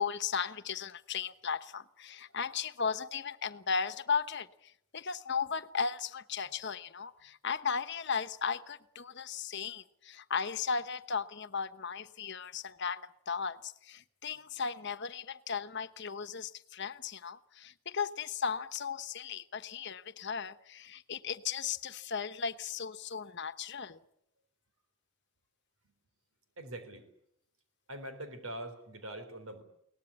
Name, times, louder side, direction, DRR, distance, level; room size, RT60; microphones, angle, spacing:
voice 1, 0.0-24.0, left 6 dB, 55° left, 1.1 m, -36 dB
voice 2, 26.6-27.1 27.9-29.6, right 1 dB, 80° right, 3.8 m, -43 dB
22.5 x 19.0 x 9.9 m
head